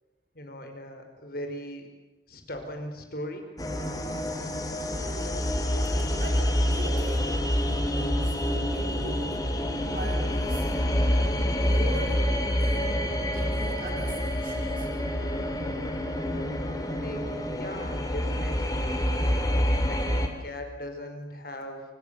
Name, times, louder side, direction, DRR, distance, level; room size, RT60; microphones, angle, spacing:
voice 1, 0.3-1.9 2.3-3.4 16.6-19.0 19.8-20.0 20.4-21.8, equal, 55° left, 5 dB, 5.1 m, -39 dB
sound 1, 3.6-20.3, equal, 20° left, 3.2 m, -27 dB
voice 2, 4.8-5.4 5.8-9.5 9.9-10.7 11.6-12.3 12.5-15.1 15.4-16.0, right 1 dB, 50° right, 2 dB, 4.0 m, -41 dB
28.0 x 26.5 x 7.0 m, 1.1 s
head